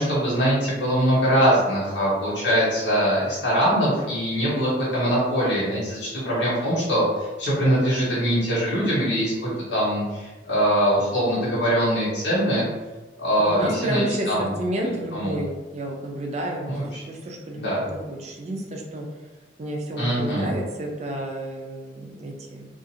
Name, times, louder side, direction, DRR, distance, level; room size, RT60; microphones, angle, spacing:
voice 1, 0.0-12.7 13.2-14.5 15.1-15.4 16.7-17.0 17.6-17.8 20.0-20.5, equal, 90° left, -8 dB, 1.2 m, -22 dB
voice 2, 13.4-16.7 17.1-17.6 18.1-19.1 19.6-22.7, right 1 dB, 40° right, 1 dB, 0.5 m, -30 dB
2.5 x 2.5 x 2.7 m, 1.2 s
head